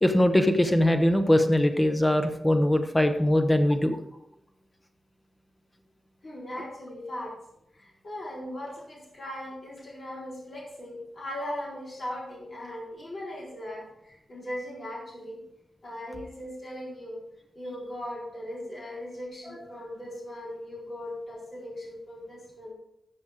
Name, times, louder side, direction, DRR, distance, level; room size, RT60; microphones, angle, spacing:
voice 1, 0.0-4.0, left 1 dB, 10° left, 6 dB, 0.7 m, -22 dB
voice 2, 6.2-7.4 7.7-15.4 15.8-17.2 17.5-22.7, left 1 dB, 40° left, -5 dB, 4.0 m, -38 dB
13.5 x 6.9 x 3.6 m, 0.81 s
wide cardioid pair, 175°, 0 cm